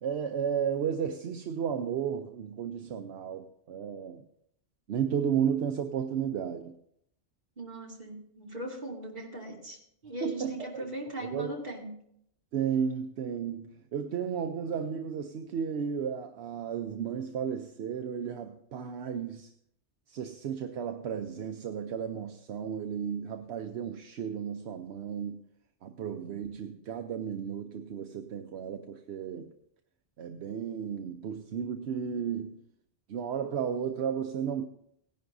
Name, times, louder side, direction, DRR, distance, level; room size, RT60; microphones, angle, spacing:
voice 1, 0.0-4.2 4.9-6.8 10.2-10.9 11.3-11.5 12.5-19.5 20.1-25.4 25.8-29.5 30.2-32.6 33.1-34.7, right 7 dB, 75° right, 6 dB, 0.9 m, -33 dB
voice 2, 7.6-9.8 10.0-11.9, right 1 dB, 45° right, -3 dB, 2.6 m, -39 dB
17.5 x 10.5 x 2.6 m, 0.72 s
omnidirectional pair, 1.1 m